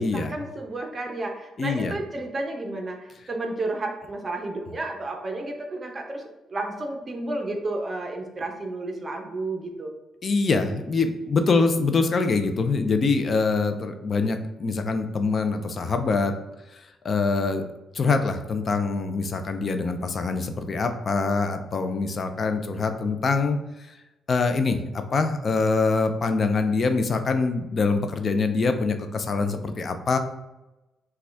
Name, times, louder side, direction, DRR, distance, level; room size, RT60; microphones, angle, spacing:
voice 1, 0.0-9.9, right 2 dB, 30° right, 3 dB, 0.8 m, -32 dB
voice 2, 1.6-1.9 10.2-16.3 16.7-17.6 17.9-23.9 24.3-30.2, left 4 dB, 45° left, 7 dB, 0.5 m, -24 dB
6.0 x 2.3 x 3.4 m, 0.99 s
cardioid pair, 90°, 0 cm